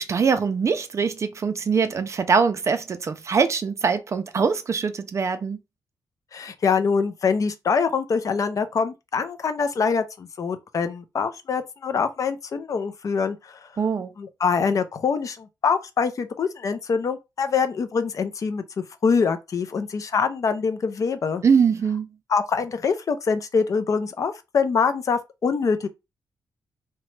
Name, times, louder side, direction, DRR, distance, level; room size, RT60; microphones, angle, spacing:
voice 1, 0.0-5.6 13.8-14.1 21.4-22.1, right 5 dB, 40° right, 0.4 m, -22 dB
voice 2, 6.3-13.7 14.2-18.6 19.0-21.4 22.3-25.9, left 5 dB, 45° left, 0.4 m, -24 dB
2.8 x 2.1 x 3.1 m
wide cardioid pair, 120°, 8 cm